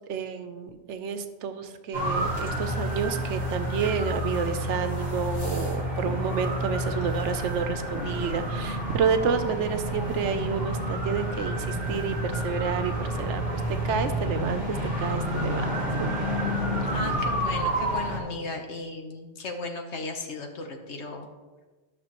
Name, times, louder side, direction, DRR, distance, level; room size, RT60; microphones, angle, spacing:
voice 1, 0.1-15.7 16.0-16.1, right 6 dB, 90° right, 9 dB, 1.0 m, -30 dB
sound 1, 1.9-18.2, equal, 50° left, 2.0 m, -29 dB
voice 2, 16.8-21.3, left 2 dB, 75° left, 3 dB, 1.2 m, -35 dB
13.0 x 6.1 x 3.0 m, 1.3 s
omnidirectional pair, 1.2 m